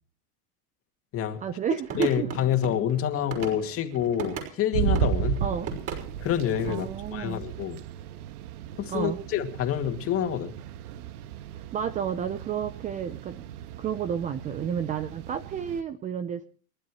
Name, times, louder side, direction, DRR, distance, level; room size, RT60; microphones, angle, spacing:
voice 1, 1.4-2.3 5.4-5.7 6.7-7.4 8.9-9.2 11.7-13.4 13.8-16.4, right 8 dB, 15° right, 0.6 m, -31 dB
sound 1, 1.8-4.5 5.0-6.9, right 5 dB, 35° right, 6.1 m, -37 dB
voice 2, 2.0-5.4 6.2-7.8 8.8-10.5, left 10 dB, 30° left, 2.4 m, -27 dB
sound 2, 4.7-15.8, right 9 dB, 70° right, 1.5 m, -34 dB
29.5 x 12.5 x 3.1 m
supercardioid pair, 150°, 46 cm